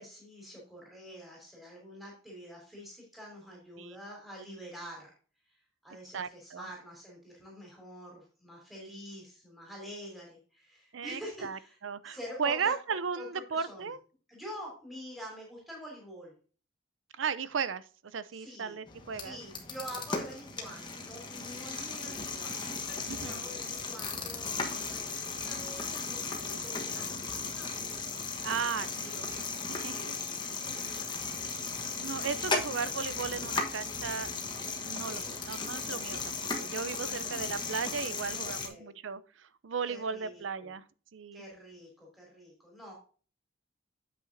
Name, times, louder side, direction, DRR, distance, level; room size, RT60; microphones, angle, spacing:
voice 1, 0.0-5.1 5.5-5.6 5.8-11.8 12.0-13.9 14.3-16.3 18.3-18.8 19.2-27.8 29.9-31.5 31.9-32.3 35.1-35.3 36.9-37.3 38.4-38.9 39.9-40.7 41.3-42.9, equal, ahead, 3.3 m, -47 dB
voice 2, 6.1-6.7 10.9-14.0 17.2-19.4 23.1-23.4 28.4-30.0 30.4-30.5 32.0-34.3 34.8-40.9 41.1-41.4, right 6 dB, 75° right, 0.5 m, -36 dB
sound 1, 18.9-38.7, left 4 dB, 25° left, 1.2 m, -36 dB
8.7 x 7.7 x 2.6 m
head